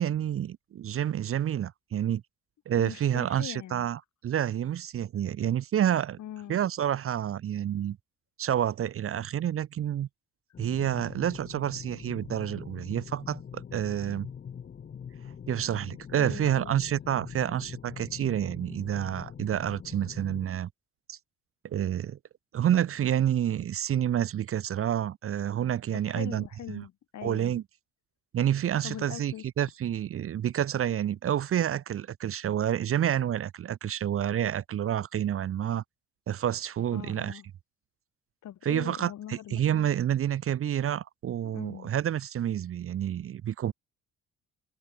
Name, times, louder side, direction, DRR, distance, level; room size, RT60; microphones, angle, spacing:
voice 1, 0.0-2.2 2.7-6.2 6.5-8.0 8.4-10.1 10.6-14.3 15.5-20.7 21.1-21.2 21.6-22.2 22.5-26.8 27.2-27.6 28.3-35.8 36.3-37.4 38.6-43.7, right 10 dB, 45° right, 0.6 m, -29 dB
voice 2, 2.7-3.9 6.2-6.6 16.2-16.8 25.9-27.5 28.8-29.4 36.9-37.5 38.4-39.9 41.4-41.9, left 11 dB, 70° left, 2.3 m, -42 dB
sound 1, 10.5-20.5, left 7 dB, 35° left, 0.6 m, -43 dB
cardioid pair, 90°, 30 cm